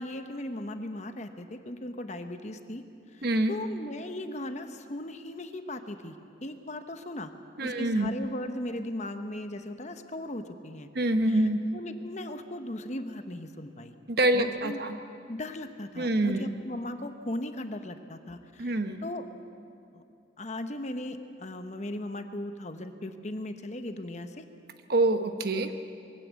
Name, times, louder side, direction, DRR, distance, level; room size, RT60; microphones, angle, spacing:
voice 1, 0.0-2.8 3.1-6.1 6.4-7.3 7.6-10.9 11.3-13.9 14.3-14.8 15.3-19.3 19.9-20.0 20.4-24.4, left 1 dB, 35° left, 8 dB, 1.0 m, -38 dB
voice 2, 3.2-3.5 7.6-8.1 10.9-11.6 14.1-15.0 16.0-16.5 18.6-19.1 24.9-25.7, right 1 dB, 55° right, 7 dB, 1.1 m, -26 dB
23.0 x 16.0 x 8.3 m, 2.5 s
head